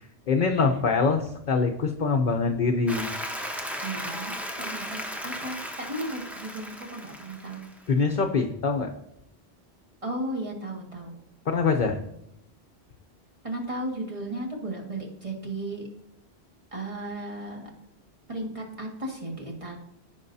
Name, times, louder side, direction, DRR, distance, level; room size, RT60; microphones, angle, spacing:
voice 1, 0.3-3.1 7.9-8.9 11.5-12.0, left 4 dB, 50° left, 3 dB, 0.8 m, -24 dB
Applause, 2.9-7.9, equal, ahead, 0.8 m, -36 dB
voice 2, 3.8-7.7 10.0-11.2 13.4-15.9 16.7-17.7 18.3-19.8, right 1 dB, 30° right, -1 dB, 1.9 m, -35 dB
15.0 x 5.3 x 2.7 m, 0.79 s
omnidirectional pair, 1.1 m